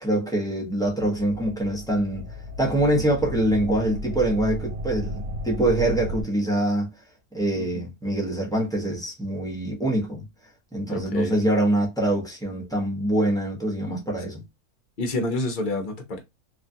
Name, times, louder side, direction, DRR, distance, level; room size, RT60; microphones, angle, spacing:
voice 1, 0.0-2.2 2.6-6.9 7.3-10.2 10.7-14.4, right 1 dB, 5° left, 0.8 m, -24 dB
sound 1, 0.9-6.2, equal, 65° right, 1.2 m, -34 dB
voice 2, 7.5-7.8 10.9-11.4 15.0-16.2, left 2 dB, 45° left, 0.7 m, -28 dB
2.9 x 2.4 x 2.6 m
omnidirectional pair, 1.6 m